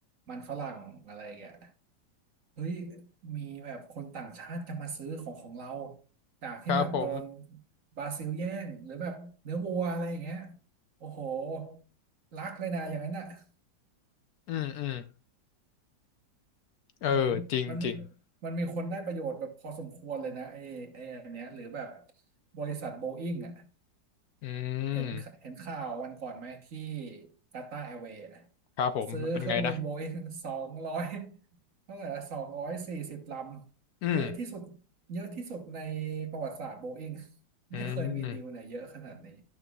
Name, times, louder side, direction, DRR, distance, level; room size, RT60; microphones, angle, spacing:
voice 1, 0.3-1.7 2.6-6.0 6.4-7.6 8.0-10.5 11.0-11.8 12.3-13.4 17.1-18.0 18.4-22.0 22.5-23.7 24.9-28.5 29.1-31.4 31.9-33.6 34.1-34.8 35.1-37.3 37.7-39.4, right 4 dB, 50° right, 1.4 m, -37 dB
voice 2, 6.7-7.2 14.5-15.0 17.0-17.9 24.4-25.2 28.8-29.7 34.0-34.3 37.7-38.4, left 9 dB, 70° left, 0.9 m, -30 dB
13.0 x 5.9 x 2.3 m
omnidirectional pair, 2.0 m